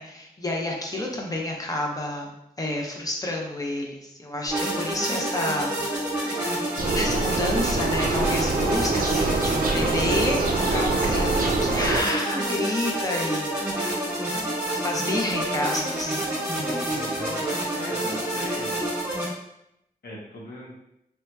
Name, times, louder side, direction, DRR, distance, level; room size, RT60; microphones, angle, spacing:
voice 1, 0.0-2.3 2.6-5.8 6.9-10.4 10.7-13.6 14.7-16.2, left 1 dB, 20° left, 0 dB, 0.7 m, -29 dB
sound 1, 4.5-19.2, right 1 dB, 15° right, 1.2 m, -28 dB
sound 2, 6.8-12.0, right 3 dB, 60° right, 0.4 m, -25 dB
voice 2, 16.6-18.9 20.0-20.8, left 1 dB, 85° left, -4 dB, 0.9 m, -39 dB
3.3 x 2.8 x 2.2 m, 0.83 s
wide cardioid pair, 70°, 16 cm